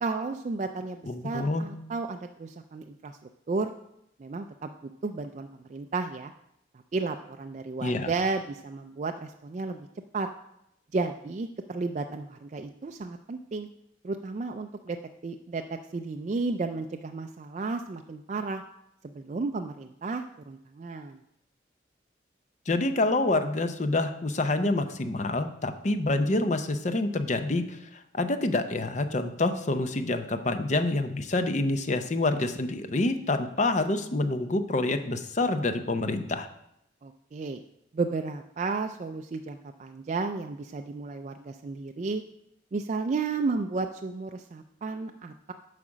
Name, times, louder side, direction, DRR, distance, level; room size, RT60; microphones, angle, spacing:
voice 1, 0.0-3.2 3.5-3.7 4.2-6.3 6.9-9.9 10.1-10.3 10.9-13.7 14.0-15.0 15.2-18.6 19.1-21.2 37.0-37.6 37.9-42.2 42.7-45.5, right 3 dB, 40° right, 5 dB, 0.3 m, -33 dB
voice 2, 1.1-1.7 7.8-8.1 22.7-36.5, left 2 dB, 40° left, 9 dB, 0.6 m, -27 dB
8.4 x 4.9 x 6.1 m, 0.80 s
head